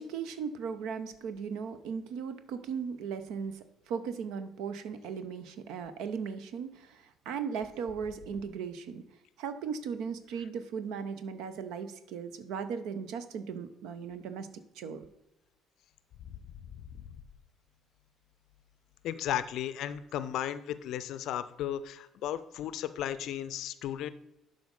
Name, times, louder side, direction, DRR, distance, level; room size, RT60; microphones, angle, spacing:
voice 1, 0.0-9.0 9.4-15.0, right 6 dB, 60° right, 11 dB, 0.7 m, -37 dB
voice 2, 19.0-24.1, left 11 dB, 60° left, 14 dB, 0.5 m, -35 dB
11.5 x 5.0 x 3.9 m, 0.92 s
figure-of-eight pair, 50°, 0 cm